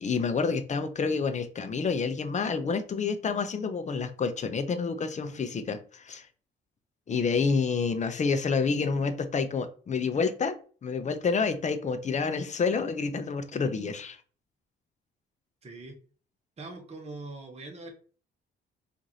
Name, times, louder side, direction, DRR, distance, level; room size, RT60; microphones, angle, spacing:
voice 1, 0.0-6.3 7.1-10.5 10.8-14.2, left 5 dB, 35° left, 9 dB, 0.6 m, -28 dB
voice 2, 15.6-16.0 16.6-17.9, right 2 dB, 30° right, 2 dB, 1.0 m, -42 dB
4.7 x 2.6 x 2.7 m, 0.40 s
cardioid pair, 90°, 20 cm